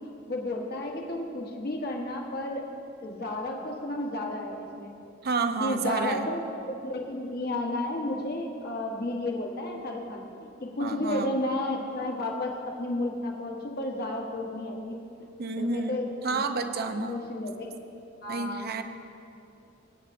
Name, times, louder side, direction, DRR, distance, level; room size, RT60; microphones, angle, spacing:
voice 1, 0.3-2.6 3.0-4.9 5.6-10.2 10.6-15.0 15.5-16.4 16.7-17.7 18.2-18.7, left 1 dB, 50° left, 0 dB, 1.2 m, -32 dB
voice 2, 5.2-6.3 10.8-11.3 15.4-17.2 18.3-18.8, right 4 dB, 50° right, 8 dB, 0.6 m, -30 dB
22.5 x 8.7 x 2.6 m, 2.8 s
head